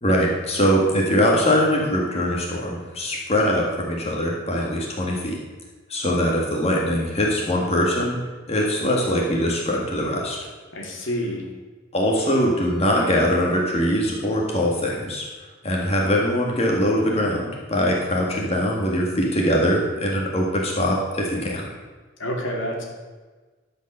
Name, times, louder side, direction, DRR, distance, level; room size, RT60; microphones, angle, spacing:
voice 1, 0.0-5.4 5.9-8.2 8.5-10.4 11.9-15.3 15.6-21.7, equal, 30° left, -2 dB, 1.8 m, -22 dB
voice 2, 10.7-11.4 22.2-22.8, equal, 75° left, -1 dB, 2.6 m, -28 dB
13.0 x 5.3 x 6.6 m, 1.3 s
head